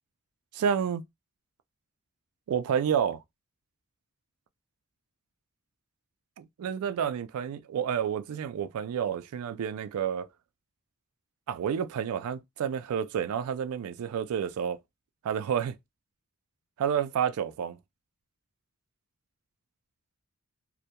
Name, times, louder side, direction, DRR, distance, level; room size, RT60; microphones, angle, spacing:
voice 1, 0.5-1.0 2.5-3.2 6.4-10.3 11.5-14.8 15.2-15.8 16.8-17.8, right 8 dB, 85° right, 0.3 m, -30 dB
2.2 x 2.1 x 2.7 m
head